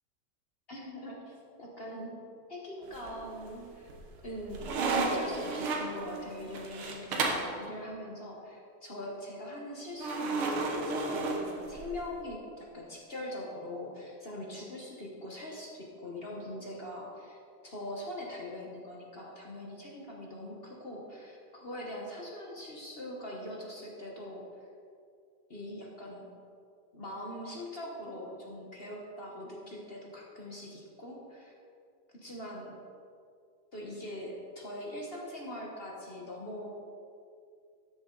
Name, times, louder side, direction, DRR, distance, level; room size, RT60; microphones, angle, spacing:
voice 1, 0.7-2.2 2.5-3.9 4.2-24.4 25.5-26.3 26.9-31.5 32.1-32.8 33.7-36.7, left 1 dB, 35° left, -2 dB, 1.1 m, -42 dB
sound 1, 2.9-3.5 3.9-7.6 10.0-12.1, right 3 dB, 80° right, 2.0 m, -33 dB
13.5 x 6.9 x 3.9 m, 2.4 s
omnidirectional pair, 2.3 m